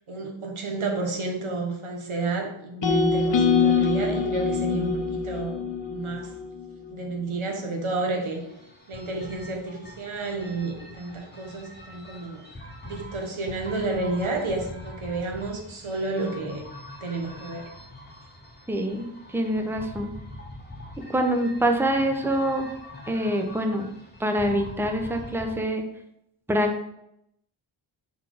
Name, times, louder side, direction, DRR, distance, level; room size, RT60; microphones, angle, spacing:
voice 1, 0.0-5.6 5.9-6.3 6.9-8.4 8.9-12.4 12.8-16.6 17.0-17.7, right 3 dB, 85° right, 2 dB, 1.4 m, -31 dB
sound 1, 2.8-7.0, left 5 dB, 60° left, 0.9 m, -24 dB
sound 2, 8.2-25.6, equal, 20° left, 1.3 m, -44 dB
voice 2, 18.7-20.1 21.1-22.7 23.1-23.9 24.2-25.8 26.5-26.8, equal, 5° right, 4 dB, 0.8 m, -25 dB
6.0 x 4.1 x 4.9 m, 0.78 s
wide cardioid pair, 105°, 48 cm